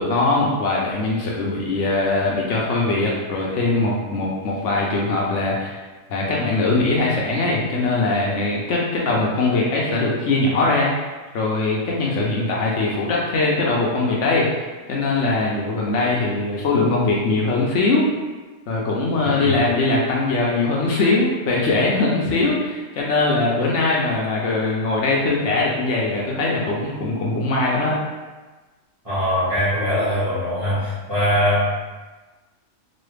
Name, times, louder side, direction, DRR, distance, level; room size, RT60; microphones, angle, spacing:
voice 1, 0.0-5.8 6.1-10.9 11.3-14.5 14.9-18.1 18.7-28.0, left 2 dB, 70° left, -3 dB, 0.9 m, -21 dB
voice 2, 19.2-19.6 29.0-31.7, equal, 30° right, -12 dB, 1.3 m, -22 dB
3.1 x 2.2 x 3.2 m, 1.2 s
omnidirectional pair, 1.3 m